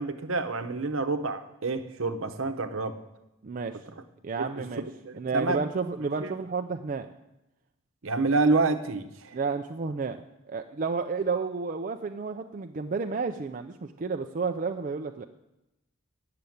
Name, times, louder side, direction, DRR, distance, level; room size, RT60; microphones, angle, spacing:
voice 1, 0.0-3.0 3.9-4.0 4.4-4.6 5.0-5.6 6.2-6.3 8.0-9.4, right 3 dB, 65° right, 8 dB, 0.9 m, -28 dB
voice 2, 3.4-3.8 4.2-4.8 5.1-7.1 9.3-10.2 10.5-15.2, right 4 dB, 40° right, 5 dB, 0.4 m, -31 dB
9.3 x 6.7 x 8.6 m, 0.93 s
head